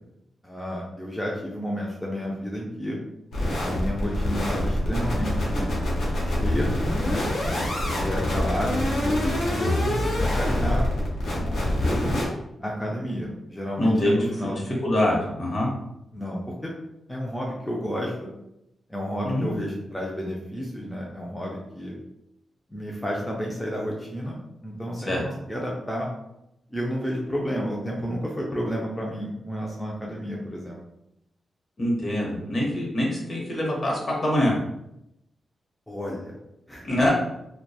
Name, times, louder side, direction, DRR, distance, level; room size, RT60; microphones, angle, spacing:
voice 1, 0.4-3.0 3.6-5.7 6.2-6.7 7.0-7.3 8.0-10.9 11.4-12.1 12.6-14.6 16.1-16.7 17.1-18.3 18.9-22.0 22.7-24.4 24.6-26.1 26.7-30.8 35.9-36.4 36.7-37.0, equal, 5° left, -3 dB, 0.4 m, -31 dB
sound 1, 3.3-12.3, left 1 dB, 85° left, 0.8 m, -25 dB
voice 2, 13.8-14.3 14.5-15.7 19.2-19.5 25.1-25.2 31.8-34.5 36.8-37.1, left 1 dB, 45° left, -3 dB, 0.9 m, -24 dB
2.6 x 2.2 x 2.3 m, 0.83 s
cardioid pair, 85°, 0 cm